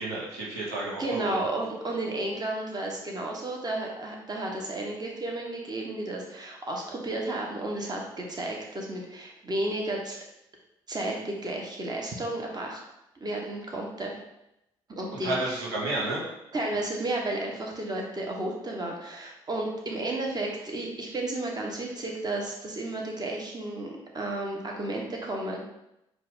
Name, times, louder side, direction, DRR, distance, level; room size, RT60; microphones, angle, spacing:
voice 1, 0.0-1.4 15.2-16.2, right 2 dB, 90° right, -5 dB, 0.8 m, -31 dB
voice 2, 1.0-10.2 10.9-12.8 13.2-14.1 15.0-15.4 16.5-25.6, right 2 dB, 35° right, 0 dB, 1.1 m, -32 dB
4.5 x 2.4 x 3.7 m, 0.86 s
hypercardioid pair, 50°, 12 cm